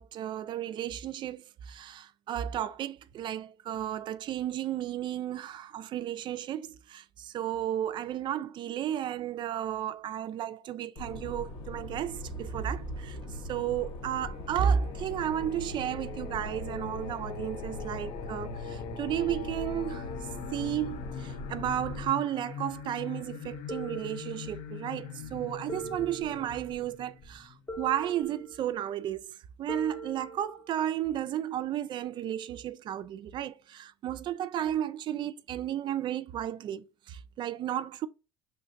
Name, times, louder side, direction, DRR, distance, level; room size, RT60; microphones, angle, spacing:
voice 1, 0.0-13.2 13.5-20.1 20.5-38.1, right 10 dB, 40° right, 0.3 m, -33 dB
sound 1, 11.0-22.1, left 1 dB, 50° left, 0.8 m, -41 dB
Singing, 13.5-28.2, left 7 dB, 85° left, 0.6 m, -43 dB
sound 2, 23.7-24.9 25.7-26.9 27.7-28.8 29.7-30.9, right 1 dB, 15° left, 0.7 m, -43 dB
6.1 x 3.2 x 2.5 m
cardioid pair, 145°, 12 cm